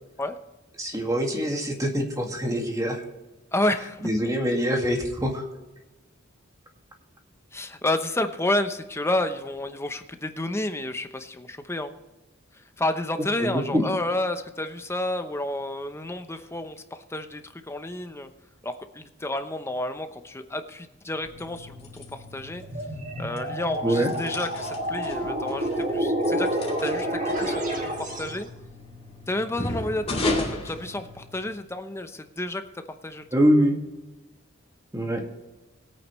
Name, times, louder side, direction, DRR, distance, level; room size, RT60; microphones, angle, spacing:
voice 1, 0.8-3.0 4.0-5.4 13.4-13.8 23.8-24.1 33.3-33.8 34.9-35.2, equal, 15° right, 2 dB, 2.0 m, -24 dB
voice 2, 3.5-4.0 7.5-11.9 12.5-18.3 18.6-22.6 23.2-26.5 26.8-28.5 29.3-33.3, left 1 dB, 15° left, 8 dB, 0.8 m, -30 dB
sound 1, 21.1-31.6, left 2 dB, 30° left, 2.5 m, -36 dB
sound 2, 22.6-28.4, right 1 dB, 40° right, 2.0 m, -29 dB
21.0 x 8.8 x 3.2 m, 1.1 s
head